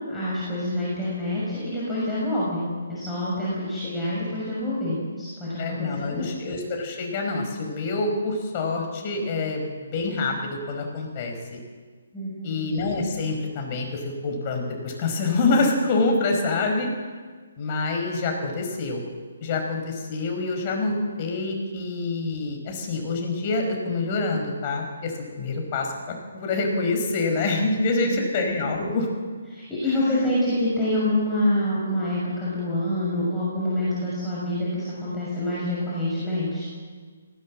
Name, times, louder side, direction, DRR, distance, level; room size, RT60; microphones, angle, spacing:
voice 1, 0.1-6.4 12.1-12.6 28.0-28.3 29.5-36.7, left 1 dB, 5° left, -10 dB, 6.2 m, -27 dB
voice 2, 5.6-11.6 12.4-16.9 17.6-19.0 19.4-25.1 25.4-25.9 26.3-29.1 29.9-30.3, left 3 dB, 35° left, 2 dB, 5.2 m, -26 dB
19.5 x 17.5 x 7.6 m, 1.5 s
figure-of-eight pair, 140°, 0 cm